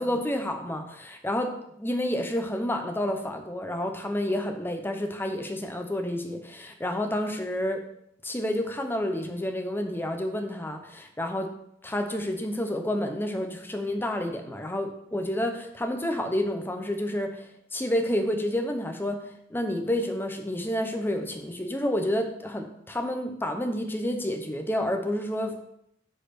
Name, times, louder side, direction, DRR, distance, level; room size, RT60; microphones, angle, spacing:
voice 1, 0.0-7.8 8.2-11.5 11.8-19.2 19.5-25.6, left 1 dB, 10° left, 4 dB, 0.9 m, -29 dB
7.8 x 4.2 x 6.7 m, 0.75 s
head